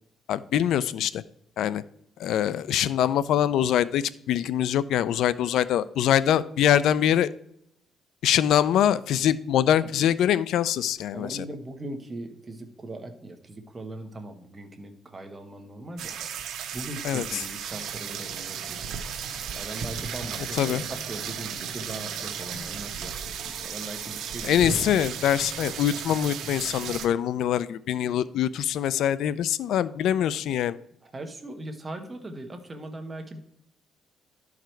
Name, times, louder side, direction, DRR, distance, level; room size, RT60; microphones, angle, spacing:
voice 1, 0.3-1.2 1.6-1.8 2.2-7.3 8.2-11.4 17.0-17.2 20.6-20.8 24.4-30.8, left 10 dB, 80° left, 17 dB, 0.3 m, -24 dB
voice 2, 11.1-16.2 16.7-18.9 19.5-24.7 31.0-33.4, right 2 dB, 20° right, 5 dB, 1.1 m, -40 dB
sound 1, 16.0-27.1, right 7 dB, 75° right, 0.9 m, -35 dB
11.5 x 4.8 x 4.5 m, 0.75 s
cardioid pair, 150°, 0 cm